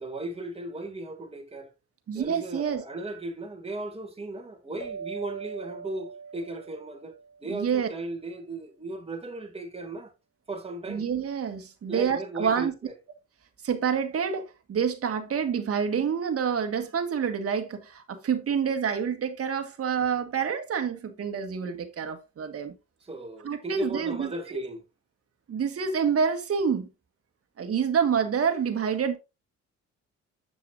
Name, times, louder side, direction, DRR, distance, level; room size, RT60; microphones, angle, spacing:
voice 1, 0.0-1.7 2.1-10.1 10.5-11.1 11.9-12.9 23.0-24.8, right 2 dB, 20° right, 2.3 m, -37 dB
voice 2, 2.1-2.8 7.5-7.9 10.9-12.7 13.6-22.7 23.4-24.6 25.5-26.9 27.6-29.2, right 7 dB, 50° right, 1.7 m, -27 dB
sound 1, 4.8-7.8, right 5 dB, 25° left, 1.5 m, -41 dB
7.9 x 7.0 x 2.5 m
cardioid pair, 90°, 30 cm